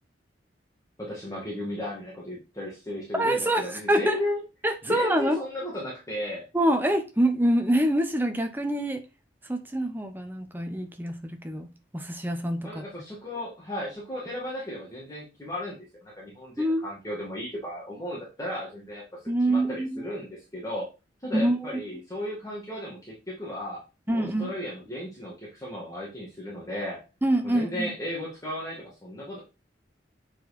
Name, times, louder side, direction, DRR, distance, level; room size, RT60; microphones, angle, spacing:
voice 1, 1.0-4.4 4.8-6.5 12.6-20.9 21.2-23.8 24.1-27.0 27.4-29.4, left 1 dB, 20° left, 2.1 m, -35 dB
voice 2, 3.1-4.2 4.6-5.4 6.5-9.0 9.5-11.7 11.9-12.8 16.6-16.9 19.3-20.0 21.3-21.7 24.1-24.5 27.2-27.9, right 1 dB, 10° right, 1.0 m, -25 dB
7.8 x 4.8 x 4.2 m
head